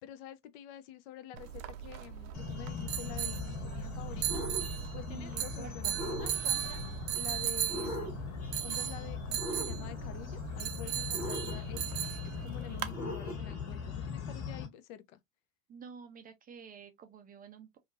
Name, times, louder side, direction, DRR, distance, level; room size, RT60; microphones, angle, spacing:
voice 1, 0.0-4.4 4.9-6.8 7.1-8.2 8.6-15.2, left 11 dB, 55° left, 0.5 m, -48 dB
sound 1, 1.4-13.0, right 11 dB, 70° right, 0.6 m, -37 dB
sound 2, 2.3-14.7, left 6 dB, 40° left, 1.5 m, -41 dB
sound 3, 4.3-4.7 5.9-6.6 7.7-8.3 9.4-10.0 11.1-11.8 12.9-13.6, equal, 85° left, 1.2 m, -39 dB
voice 2, 5.1-6.0 15.7-17.8, right 6 dB, 20° right, 0.4 m, -49 dB
2.8 x 2.4 x 2.4 m
hypercardioid pair, 90°, 41 cm